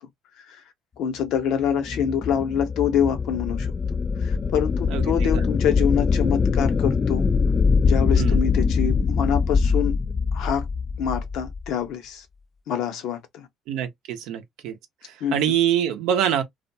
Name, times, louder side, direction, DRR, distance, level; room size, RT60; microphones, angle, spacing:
voice 1, 1.0-3.7 4.2-7.3 7.8-10.0 10.3-10.7 11.0-12.2 12.7-13.5 15.2-15.4, left 8 dB, 70° left, 0.7 m, -26 dB
sound 1, 1.6-11.7, left 5 dB, 35° left, 0.4 m, -23 dB
voice 2, 4.9-5.4 8.2-8.4 13.7-14.8 15.0-16.4, right 10 dB, 75° right, 0.6 m, -25 dB
2.4 x 2.1 x 2.6 m
hypercardioid pair, 70°, 0 cm